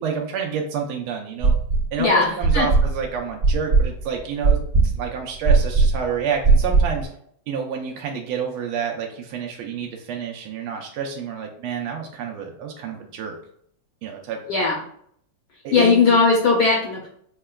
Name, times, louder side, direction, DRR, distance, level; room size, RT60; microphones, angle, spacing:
voice 1, 0.0-1.5 1.9-7.1 7.5-13.3 14.0-14.4 15.6-16.0, right 6 dB, 80° right, 1 dB, 1.4 m, -29 dB
sound 1, 1.4-2.0 2.4-7.0, right 4 dB, 40° right, 1.4 m, -18 dB
voice 2, 2.0-2.7 14.5-14.8 15.7-17.1, left 4 dB, 75° left, -1 dB, 0.9 m, -18 dB
6.3 x 2.2 x 2.3 m, 0.66 s
omnidirectional pair, 2.4 m